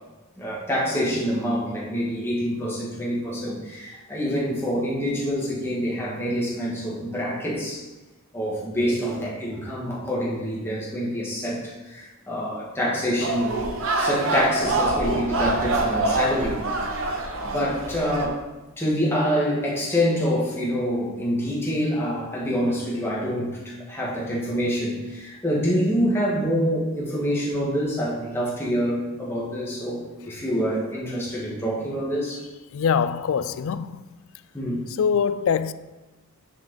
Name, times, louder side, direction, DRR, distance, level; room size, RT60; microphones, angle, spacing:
voice 1, 0.4-7.9 8.3-13.5 14.0-16.7 17.4-18.5 18.8-32.4 34.5-34.8, equal, 10° left, 1.8 m, -26 dB
sound 1, 13.2-18.3, right 2 dB, 60° right, 1.0 m, -25 dB
voice 2, 32.7-34.0 35.0-35.7, left 7 dB, 65° left, 0.3 m, -23 dB
9.5 x 5.0 x 4.0 m
head